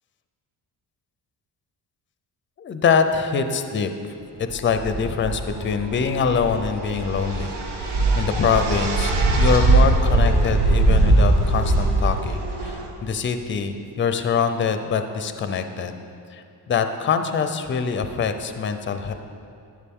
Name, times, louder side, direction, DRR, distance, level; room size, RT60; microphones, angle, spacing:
voice 1, 2.6-3.9 4.4-16.0 16.3-19.1, left 6 dB, 30° left, 8 dB, 0.5 m, -24 dB
sound 1, 4.5-12.8, right 2 dB, 85° right, 1.4 m, -20 dB
11.0 x 10.5 x 3.6 m, 2.6 s
wide cardioid pair, 175°, 40 cm